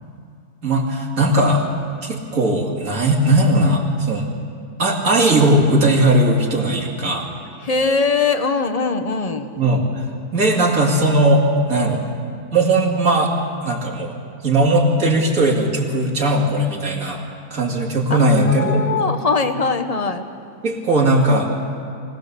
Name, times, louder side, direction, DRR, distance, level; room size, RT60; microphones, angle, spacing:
voice 1, 0.6-1.6 2.0-4.3 4.8-7.3 9.6-10.1 10.3-12.0 12.5-13.3 13.6-14.1 14.4-17.2 17.5-18.8 20.6-21.5, right 1 dB, 55° right, -1 dB, 2.8 m, -18 dB
voice 2, 7.6-9.5 18.1-20.2, left 4 dB, 30° left, 7 dB, 0.8 m, -21 dB
24.0 x 17.0 x 6.8 m, 2.3 s
omnidirectional pair, 1.8 m